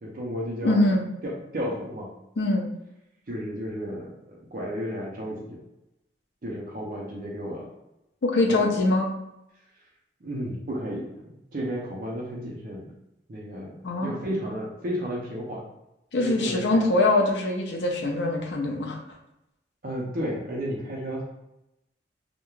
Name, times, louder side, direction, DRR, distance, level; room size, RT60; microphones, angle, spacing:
voice 1, 0.0-0.8 1.2-2.1 3.3-5.6 6.4-7.7 8.5-8.8 10.2-11.2 11.5-12.9 13.3-15.6 16.2-16.8 19.8-21.2, equal, 45° right, -3 dB, 0.5 m, -33 dB
voice 2, 0.6-1.0 2.4-2.7 8.2-9.1 13.8-14.1 16.1-19.0, left 2 dB, 70° left, 1 dB, 0.4 m, -23 dB
2.3 x 2.1 x 3.0 m, 0.88 s
head